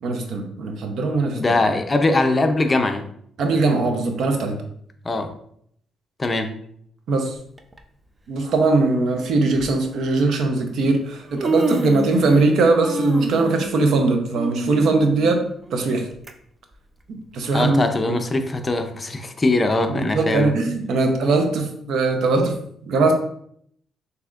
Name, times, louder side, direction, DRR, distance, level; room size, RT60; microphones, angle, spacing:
voice 1, 0.0-1.4 3.4-4.6 7.1-7.3 8.3-15.4 15.7-16.1 17.1-18.2 19.9-23.1, right 3 dB, 70° right, 5 dB, 0.7 m, -20 dB
voice 2, 1.3-3.1 5.0-5.3 6.2-6.5 17.5-20.5, left 2 dB, 25° left, 6 dB, 0.6 m, -21 dB
Human voice, 7.6-7.8 8.8-8.9 9.5-9.7 10.7-10.8 11.1-12.5 12.8-16.3 16.7-16.8 17.7-17.8, right 1 dB, 20° right, 0.5 m, -29 dB
6.0 x 2.8 x 2.5 m, 0.68 s
cardioid pair, 90°, 0 cm